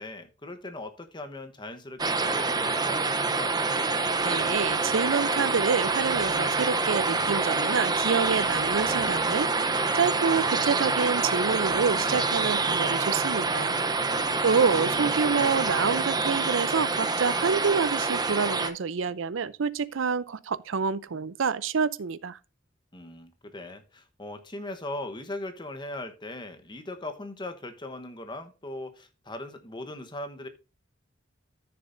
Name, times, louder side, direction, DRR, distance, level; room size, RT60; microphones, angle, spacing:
voice 1, 0.0-3.6 14.1-14.9 22.9-30.5, left 2 dB, 25° left, 1.1 m, -39 dB
sound 1, 2.0-18.7, right 3 dB, 20° right, 0.7 m, -26 dB
voice 2, 4.2-13.8 14.1-14.2 14.4-22.4, right 5 dB, 80° right, 0.6 m, -27 dB
14.0 x 6.8 x 2.6 m
head